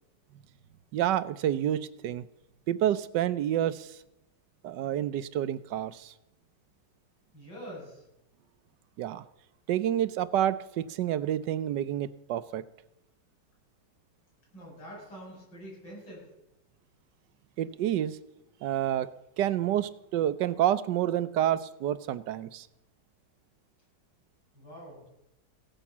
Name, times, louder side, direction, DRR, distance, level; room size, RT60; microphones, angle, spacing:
voice 1, 0.9-2.3 2.7-4.0 4.6-6.1 9.0-9.2 9.7-12.6 17.6-18.2 18.6-19.1 19.4-22.7, right 11 dB, 80° right, 15 dB, 1.3 m, -28 dB
voice 2, 7.3-8.0 14.5-16.3 24.5-25.1, equal, 85° left, -4 dB, 8.3 m, -45 dB
16.0 x 10.5 x 7.3 m, 0.89 s
omnidirectional pair, 1.9 m